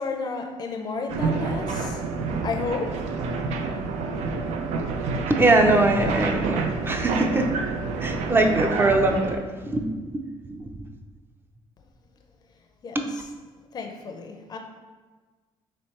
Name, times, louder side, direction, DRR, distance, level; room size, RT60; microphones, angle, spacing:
voice 1, 0.0-2.0 2.4-3.1 12.8-13.0 13.7-14.6, left 4 dB, 35° left, 4 dB, 0.5 m, -32 dB
sound 1, 1.1-9.4, right 4 dB, 80° right, 0.4 m, -28 dB
voice 2, 5.3-7.5 8.0-10.2 10.5-10.7 12.9-13.0, right 2 dB, 20° right, 3 dB, 0.5 m, -22 dB
3.2 x 3.0 x 4.2 m, 1.3 s
cardioid pair, 100°, 11 cm